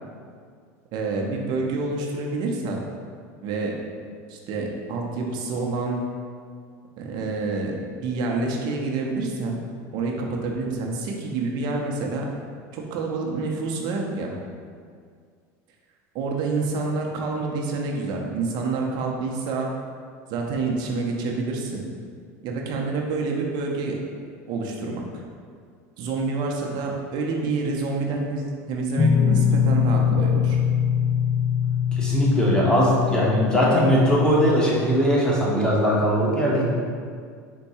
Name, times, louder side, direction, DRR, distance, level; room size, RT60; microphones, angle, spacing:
voice 1, 0.9-2.8 3.4-3.7 4.3-6.1 7.0-9.6 9.9-12.2 12.7-14.3 16.1-19.7 20.3-21.9 22.4-24.0 24.5-25.2 26.0-30.6, right 3 dB, 60° right, 0 dB, 0.6 m, -27 dB
sound 1, 29.0-34.6, left 7 dB, 40° left, 0.5 m, -22 dB
voice 2, 32.0-36.6, equal, 10° left, -5 dB, 1.1 m, -20 dB
4.5 x 2.2 x 4.2 m, 2.1 s
supercardioid pair, 105°, 9 cm